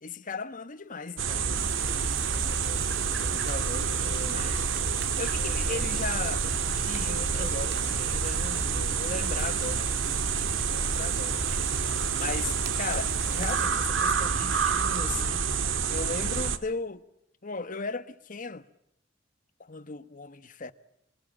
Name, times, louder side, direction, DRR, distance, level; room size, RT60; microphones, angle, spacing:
voice 1, 0.0-1.7 3.2-4.7 5.2-9.9 10.6-11.4 11.9-15.5 15.9-17.0 17.4-18.7 19.6-20.7, left 4 dB, 45° left, 1.2 m, -37 dB
sound 1, 1.2-16.6, right 6 dB, 85° right, 1.6 m, -28 dB
sound 2, 1.5-13.7, right 3 dB, 60° right, 2.5 m, -43 dB
24.5 x 23.0 x 8.8 m
head